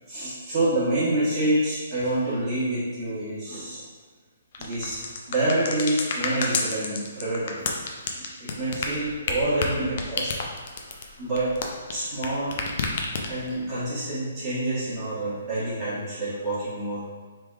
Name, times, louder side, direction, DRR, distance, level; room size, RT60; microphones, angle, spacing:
voice 1, 0.1-3.8 4.6-7.7 8.4-10.3 10.7-11.5 11.9-12.7 13.3-17.1, right 1 dB, 30° right, -12 dB, 1.3 m, -27 dB
sound 1, 4.5-12.3 12.5-13.5, left 4 dB, 50° left, 0.5 m, -29 dB
3.3 x 3.3 x 2.4 m, 1.4 s
figure-of-eight pair, 130°, 0 cm